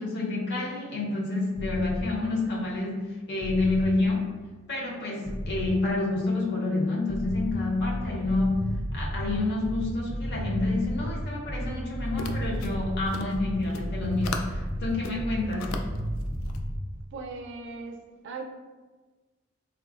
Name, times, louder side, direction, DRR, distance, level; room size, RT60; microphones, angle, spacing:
voice 1, 0.0-4.3 4.7-8.6 8.9-15.8, left 2 dB, 55° left, -2 dB, 0.7 m, -28 dB
sound 1, 1.5-2.0 3.4-3.9 5.2-5.7 7.1-16.8, equal, 15° left, 0.4 m, -32 dB
sound 2, 12.1-14.6 14.9-16.6, left 4 dB, 85° left, 0.3 m, -38 dB
voice 2, 17.1-18.0 18.2-18.4, right 4 dB, 60° right, 3 dB, 0.3 m, -38 dB
3.5 x 2.0 x 2.3 m, 1.3 s
head